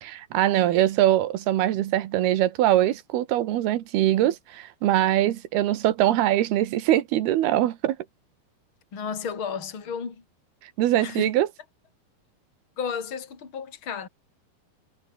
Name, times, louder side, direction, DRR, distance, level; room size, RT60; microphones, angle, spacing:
voice 1, 0.0-8.0 10.8-11.5, right 13 dB, 85° right, 3.3 m, -22 dB
voice 2, 8.9-10.2 11.0-11.3 12.8-14.1, left 6 dB, 35° left, 4.1 m, -32 dB
omnidirectional pair, 4.4 m